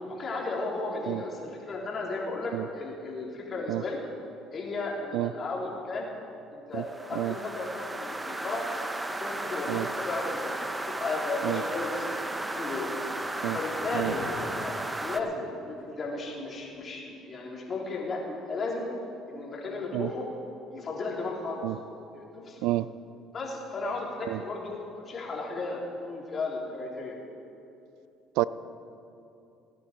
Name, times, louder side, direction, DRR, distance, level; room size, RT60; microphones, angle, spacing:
voice 1, 0.1-4.0 4.5-6.1 6.5-8.7 9.2-12.2 12.5-12.9 13.5-18.9 19.3-20.3 20.7-21.7 22.1-22.7 23.3-27.2, left 3 dB, 45° left, -3 dB, 3.5 m, -34 dB
voice 2, 1.1-1.2 2.5-2.7 3.7-3.8 5.1-5.3 6.7-6.8 7.1-7.3 9.7-9.9 11.4-11.6 13.4-13.6 13.9-14.1 19.9-20.1 21.6-21.8 22.6-22.9 24.3-24.4 28.4-28.5, right 17 dB, 80° right, 17 dB, 0.3 m, -29 dB
sound 1, 6.8-15.2, right 2 dB, 15° right, 0.9 m, -34 dB
sound 2, 12.3-16.0 16.3-16.4, left 2 dB, 85° left, 3.8 m, -44 dB
19.5 x 9.6 x 4.6 m, 2.7 s
supercardioid pair, 75°, 0 cm